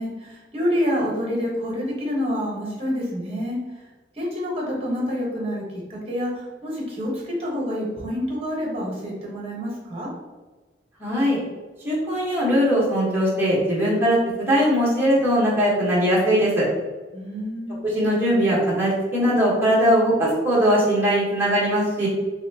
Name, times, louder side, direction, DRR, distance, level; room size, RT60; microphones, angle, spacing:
voice 1, 0.0-3.6 4.1-5.6 5.9-10.1 17.1-17.8, equal, 35° right, -3 dB, 1.2 m, -27 dB
voice 2, 11.0-11.4 11.8-16.6 17.8-22.1, equal, 15° right, -7 dB, 1.2 m, -20 dB
4.0 x 3.2 x 2.8 m, 1.2 s
head